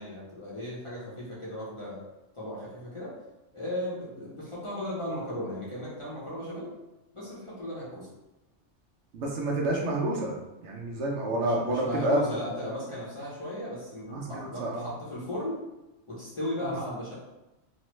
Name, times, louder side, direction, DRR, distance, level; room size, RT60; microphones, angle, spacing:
voice 1, 0.0-2.0 2.3-3.1 3.5-6.7 7.1-8.1 11.3-15.6 16.1-17.1, left 1 dB, 30° left, -9 dB, 0.7 m, -36 dB
voice 2, 9.1-10.3 10.6-12.2 14.1-14.9, right 1 dB, 70° right, -2 dB, 0.9 m, -29 dB
3.1 x 2.1 x 3.0 m, 0.99 s
omnidirectional pair, 1.2 m